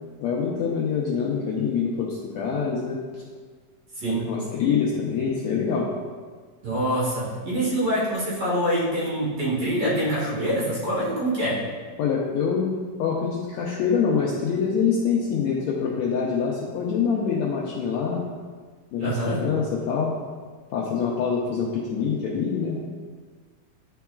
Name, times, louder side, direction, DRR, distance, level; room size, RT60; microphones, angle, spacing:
voice 1, 0.2-3.2 4.1-5.9 12.0-18.2 18.9-20.1 20.7-22.8, left 6 dB, 80° left, -3 dB, 1.6 m, -25 dB
voice 2, 6.6-11.6 19.0-19.4, right 1 dB, 55° right, -7 dB, 2.5 m, -25 dB
11.0 x 4.6 x 2.3 m, 1.6 s
omnidirectional pair, 3.8 m